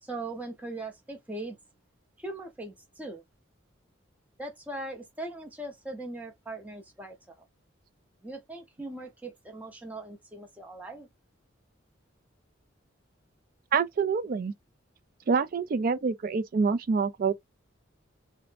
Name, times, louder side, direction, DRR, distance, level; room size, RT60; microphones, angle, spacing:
voice 1, 0.0-1.6 2.2-3.2 4.4-7.4 8.2-11.1, right 2 dB, 10° right, 0.6 m, -40 dB
voice 2, 13.7-14.5 15.3-17.3, right 5 dB, 45° right, 0.3 m, -26 dB
2.4 x 2.0 x 3.2 m
head